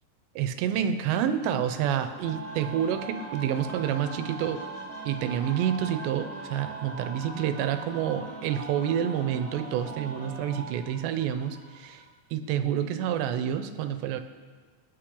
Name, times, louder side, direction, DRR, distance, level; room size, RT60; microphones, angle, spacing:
voice 1, 0.4-4.6 5.1-12.0 12.3-14.2, right 9 dB, 85° right, 9 dB, 3.1 m, -28 dB
sound 1, 1.2-12.0, equal, 20° left, 4.4 m, -46 dB
sound 2, 2.2-10.7, right 4 dB, 20° right, 1.9 m, -41 dB
24.5 x 9.3 x 3.9 m, 1.5 s
omnidirectional pair, 4.9 m